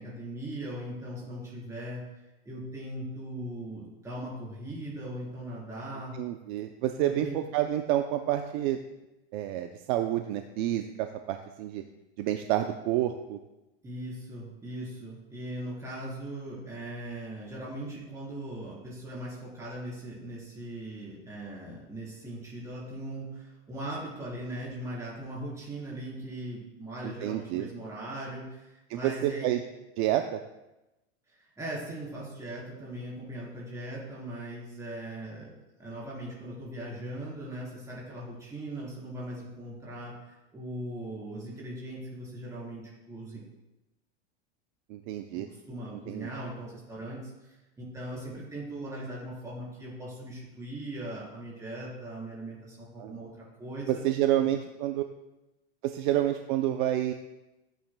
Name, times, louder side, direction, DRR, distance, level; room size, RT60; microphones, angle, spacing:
voice 1, 0.0-2.0 2.5-6.2 7.0-7.4 13.8-29.5 31.6-40.1 40.5-43.4 45.4-54.0 54.4-54.5, right 1 dB, 10° right, -6 dB, 3.8 m, -39 dB
voice 2, 6.1-8.8 9.3-11.8 12.2-13.4 27.0-27.7 28.9-29.6 30.0-30.4 44.9-45.5 46.1-46.3 53.0-53.1 53.9-55.0 55.8-57.1, right 12 dB, 50° right, 7 dB, 0.6 m, -29 dB
14.5 x 9.0 x 2.2 m, 1.0 s
supercardioid pair, 150°, 31 cm